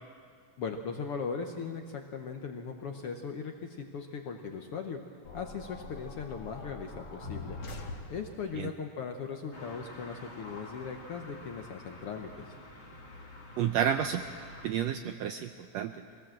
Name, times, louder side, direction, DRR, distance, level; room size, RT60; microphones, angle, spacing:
voice 1, 0.6-5.0 5.3-7.6 8.1-12.5, left 5 dB, 65° left, 4 dB, 1.5 m, -38 dB
sound 1, 5.2-8.6, left 3 dB, 45° left, 1.6 m, -43 dB
sound 2, 9.5-14.7, left 2 dB, 25° left, 1.7 m, -48 dB
voice 2, 13.6-14.2 14.6-15.9, right 9 dB, 80° right, 7 dB, 1.5 m, -30 dB
23.0 x 17.5 x 7.6 m, 2.1 s
omnidirectional pair, 3.6 m